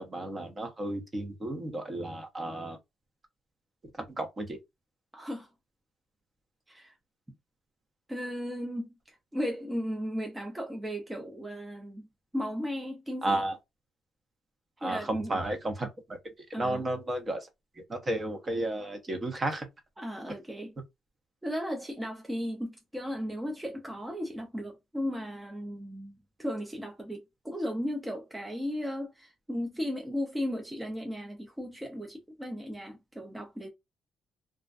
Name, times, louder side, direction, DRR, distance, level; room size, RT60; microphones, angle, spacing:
voice 1, 0.0-2.8 4.2-4.6 13.2-13.6 14.8-17.5 17.8-19.7, right 1 dB, 30° right, 0.8 m, -33 dB
voice 2, 5.1-5.5 6.7-7.0 8.1-12.1 12.3-13.3 14.8-15.4 16.5-16.8 20.0-20.7 21.4-33.7, equal, 10° right, 0.5 m, -36 dB
2.4 x 2.2 x 2.4 m
cardioid pair, 90°, 0 cm